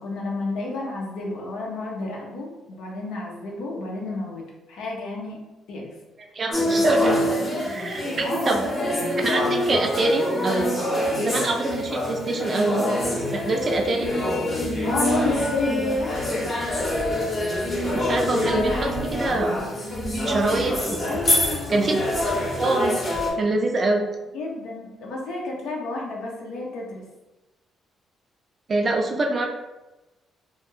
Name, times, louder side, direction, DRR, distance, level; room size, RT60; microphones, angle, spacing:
voice 1, 0.0-5.4 5.7-5.9 8.2-8.6 14.9-16.2 21.0-21.9 24.3-27.0, left 3 dB, 85° left, -2 dB, 0.6 m, -31 dB
voice 2, 6.3-7.2 7.6-8.6 9.2-10.8 11.1-12.9 13.3-14.1 17.9-19.6 20.3-21.2 21.7-22.9 23.4-24.1 28.7-29.5, right 2 dB, 40° right, 2 dB, 0.3 m, -25 dB
sound 1, 6.5-23.3, left 1 dB, 35° left, 0.7 m, -25 dB
2.3 x 2.0 x 3.1 m, 1.1 s
cardioid pair, 90°, 0 cm